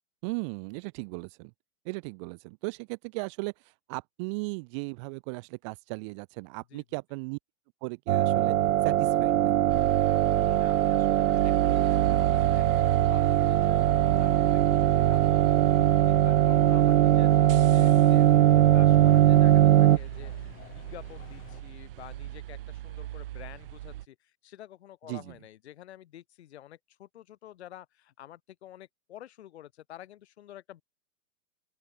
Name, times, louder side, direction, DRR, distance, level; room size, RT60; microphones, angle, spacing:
voice 1, 0.2-1.5 1.8-7.4 7.8-8.5 8.8-9.7 25.1-25.3, right 32 dB, 20° right, 1.2 m, -37 dB
sound 1, 8.1-20.0, right 13 dB, 65° right, 0.6 m, -21 dB
sound 2, 9.7-24.1, right 14 dB, 40° right, 2.0 m, -34 dB
voice 2, 10.4-15.6 16.1-30.8, left 12 dB, 50° left, 2.3 m, -49 dB
sound 3, 13.1-21.6, left 18 dB, 20° left, 7.6 m, -50 dB
open air
hypercardioid pair, 170°, 42 cm